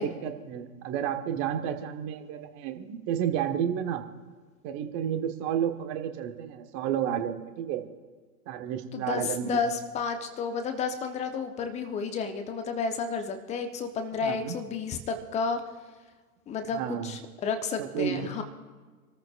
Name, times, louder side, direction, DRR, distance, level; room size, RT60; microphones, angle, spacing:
voice 1, 0.0-4.0 4.6-7.8 8.5-9.7 14.2-14.5 16.7-17.1 17.8-18.3, right 9 dB, 30° right, 6 dB, 1.4 m, -31 dB
voice 2, 8.9-15.6 16.5-18.4, left 5 dB, 15° left, 7 dB, 1.1 m, -31 dB
28.0 x 13.5 x 2.5 m, 1.5 s
figure-of-eight pair, 105°, 44 cm